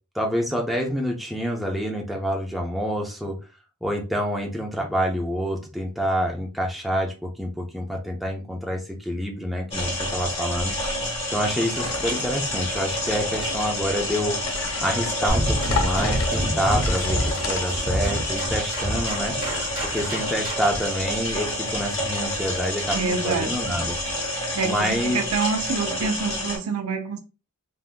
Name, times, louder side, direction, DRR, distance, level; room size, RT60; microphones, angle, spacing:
voice 1, 0.1-3.4 3.8-10.7 11.3-14.4 14.8-19.3 19.9-24.0 24.6-25.2, equal, ahead, 0.5 m, -27 dB
sound 1, 9.7-26.6, left 1 dB, 25° left, 1.1 m, -28 dB
sound 2, 11.8-18.3, left 5 dB, 65° left, 0.5 m, -34 dB
sound 3, 15.3-20.8, equal, 40° right, 1.2 m, -27 dB
voice 2, 22.9-23.5 24.3-27.2, right 4 dB, 80° right, 0.6 m, -27 dB
3.5 x 2.7 x 2.2 m
head